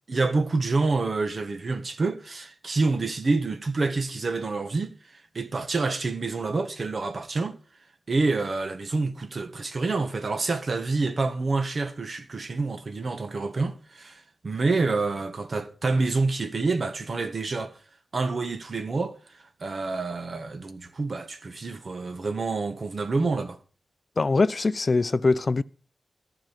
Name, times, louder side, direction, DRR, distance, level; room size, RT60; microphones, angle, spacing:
voice 1, 0.1-7.6 8.1-17.8 18.1-23.6, right 3 dB, 55° right, 1.6 m, -27 dB
voice 2, 24.2-25.6, left 3 dB, 45° left, 0.6 m, -22 dB
14.0 x 5.1 x 9.2 m
cardioid pair, 70°, 0 cm